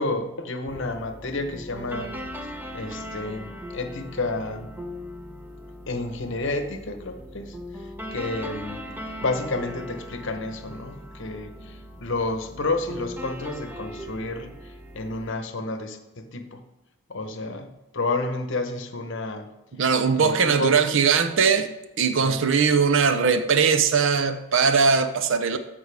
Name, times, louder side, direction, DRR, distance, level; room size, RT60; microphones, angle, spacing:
voice 1, 0.0-2.1 2.4-4.7 5.9-8.8 9.2-16.6 17.1-19.5 20.1-20.8 22.2-22.4, left 2 dB, 55° left, 7 dB, 0.9 m, -31 dB
sound 1, 0.7-15.3, equal, 10° right, 0.6 m, -39 dB
voice 2, 19.8-21.7 22.0-25.6, right 5 dB, 55° right, 10 dB, 0.6 m, -20 dB
13.0 x 5.2 x 3.4 m, 1.0 s
head